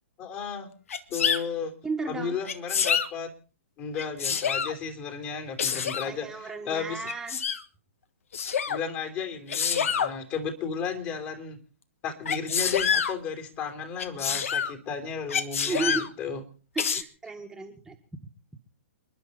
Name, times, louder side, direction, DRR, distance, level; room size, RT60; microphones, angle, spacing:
voice 1, 0.2-0.7 1.1-1.7 2.1-3.3 3.8-7.1 8.7-11.6 12.0-16.4, left 6 dB, 30° left, 5 dB, 3.3 m, -34 dB
Sneeze, 0.9-1.4 2.4-3.1 3.9-4.7 5.6-6.1 7.1-7.6 8.3-8.8 9.5-10.1 12.3-13.1 14.0-14.7 15.3-16.1 16.8-17.0, left 7 dB, 70° left, 1.4 m, -27 dB
voice 2, 1.8-2.4 6.1-7.4 15.6-16.0 16.7-18.0, right 4 dB, 5° right, 0 dB, 1.7 m, -33 dB
29.5 x 10.5 x 4.3 m, 0.39 s
hypercardioid pair, 135°, 8 cm